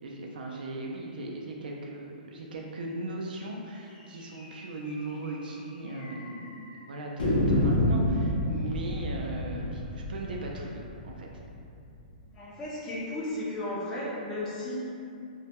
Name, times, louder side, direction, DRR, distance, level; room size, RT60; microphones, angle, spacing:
voice 1, 0.0-11.3, right 2 dB, 85° right, -1 dB, 0.3 m, -38 dB
sound 1, 4.4-4.5 4.8-4.9 5.2-5.3 6.0-6.5 7.2-12.0, left 1 dB, 80° left, 0.5 m, -29 dB
voice 2, 12.3-14.8, left 1 dB, 10° left, -7 dB, 0.3 m, -34 dB
2.1 x 2.1 x 2.8 m, 2.5 s
hypercardioid pair, 175°, 5 cm